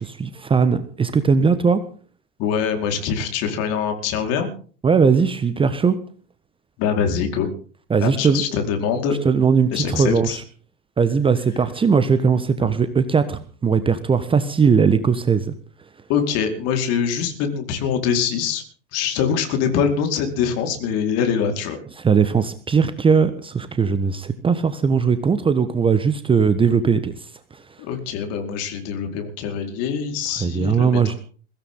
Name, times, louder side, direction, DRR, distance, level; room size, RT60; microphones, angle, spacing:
voice 1, 0.0-1.8 4.8-6.0 7.9-8.4 9.2-10.3 11.0-15.5 22.0-27.6 30.4-31.1, right 5 dB, 15° right, 12 dB, 1.3 m, -19 dB
voice 2, 2.4-4.5 6.8-7.5 8.0-9.2 9.7-10.4 16.1-18.6 18.9-21.8 27.8-31.2, left 7 dB, 40° left, 4 dB, 4.7 m, -23 dB
22.5 x 16.5 x 3.9 m, 0.42 s
figure-of-eight pair, 90°, 36 cm